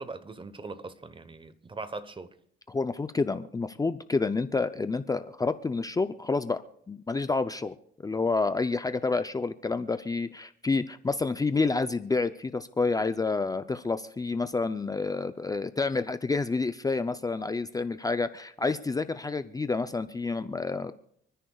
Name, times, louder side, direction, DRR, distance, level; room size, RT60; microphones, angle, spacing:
voice 1, 0.0-2.3, right 3 dB, 25° right, 1.0 m, -40 dB
voice 2, 2.7-7.8 8.0-20.9, left 3 dB, 20° left, 0.5 m, -29 dB
29.5 x 10.0 x 2.3 m
cardioid pair, 90°, 20 cm